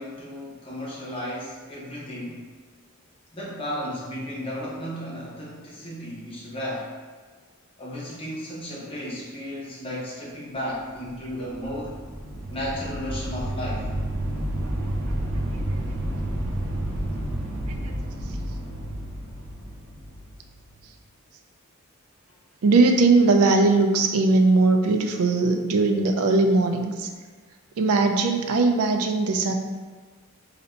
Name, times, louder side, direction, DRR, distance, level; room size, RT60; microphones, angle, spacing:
voice 1, 0.0-2.4 3.3-6.9 7.8-12.0 12.5-13.9, equal, 25° left, -5 dB, 0.9 m, -34 dB
sound 1, 11.0-20.8, right 1 dB, 65° right, 0.8 m, -30 dB
voice 2, 22.6-27.1 27.8-29.6, right 3 dB, 85° right, 5 dB, 0.4 m, -20 dB
2.8 x 2.6 x 4.2 m, 1.5 s
head